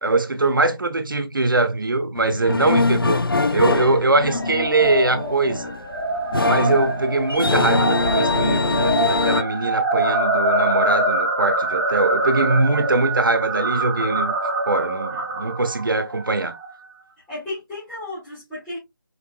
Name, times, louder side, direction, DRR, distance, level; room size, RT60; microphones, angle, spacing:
voice 1, 0.0-3.2 3.5-5.7 6.4-14.3 14.7-16.5, right 2 dB, 70° right, 0.9 m, -22 dB
sound 1, 2.2-9.4, left 3 dB, 80° left, 0.5 m, -23 dB
voice 2, 4.1-4.5 17.3-18.8, left 2 dB, 5° left, 1.8 m, -33 dB
sound 2, 4.3-16.7, right 2 dB, 15° right, 1.2 m, -24 dB
4.9 x 3.4 x 2.2 m
figure-of-eight pair, 165°, 12 cm